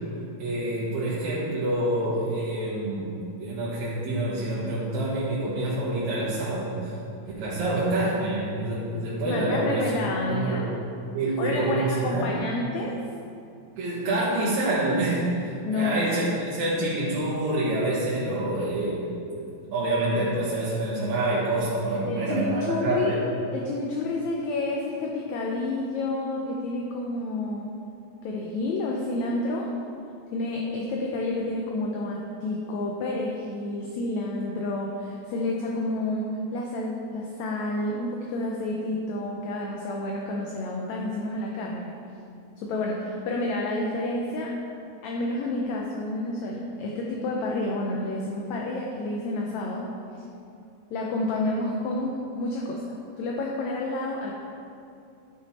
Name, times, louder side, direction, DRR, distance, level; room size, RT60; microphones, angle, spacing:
voice 1, 0.4-3.1 3.4-6.9 7.4-9.9 10.3-10.7 11.1-12.3 13.8-16.2 16.5-19.1 19.7-23.2, right 2 dB, 65° right, -9 dB, 2.6 m, -27 dB
voice 2, 9.3-10.7 11.4-13.0 15.6-16.3 22.1-23.2 23.5-27.7 28.2-29.7 30.3-42.0 42.6-44.5 45.0-49.9 50.9-54.3, left 2 dB, 75° left, -1 dB, 1.8 m, -29 dB
11.5 x 5.5 x 4.2 m, 2.6 s
omnidirectional pair, 3.7 m